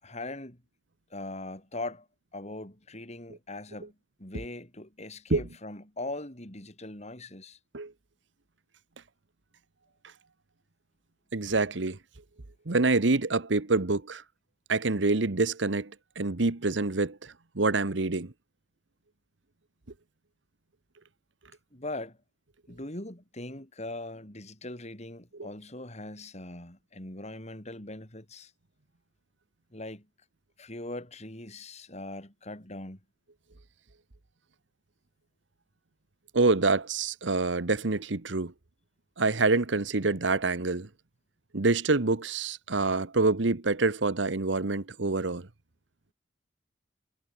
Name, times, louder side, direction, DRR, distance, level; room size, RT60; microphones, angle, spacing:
voice 1, 0.0-0.6 1.1-2.1 2.3-3.9 4.2-7.6 21.7-22.2 22.7-28.5 29.7-30.1 30.6-33.0, left 2 dB, 35° left, 5.5 m, -40 dB
voice 2, 11.3-12.0 12.7-14.2 14.7-15.9 16.2-18.3 36.3-38.5 39.2-40.9 41.5-45.5, right 3 dB, 80° right, 1.2 m, -26 dB
head